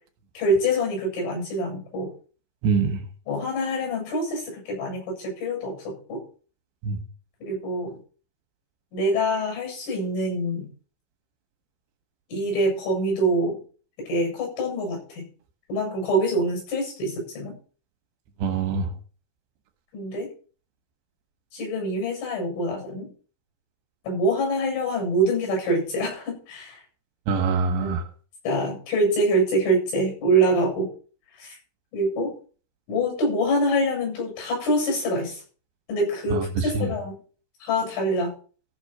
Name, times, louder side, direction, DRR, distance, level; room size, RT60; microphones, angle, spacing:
voice 1, 0.4-2.1 3.3-6.2 7.4-8.0 8.9-10.7 12.3-13.6 14.0-15.3 15.7-17.6 19.9-20.3 21.5-23.1 24.1-26.8 27.8-28.0 28.5-30.9 31.4-31.6 31.9-32.3 32.9-35.4 35.9-37.2 37.6-38.3, right 1 dB, 80° left, 1 dB, 10.5 m, -25 dB
voice 2, 2.6-3.0 6.8-7.0 18.4-18.9 27.3-28.0 36.3-36.9, right 5 dB, 70° right, 6 dB, 3.1 m, -24 dB
14.5 x 6.1 x 6.5 m, 0.39 s
omnidirectional pair, 5.8 m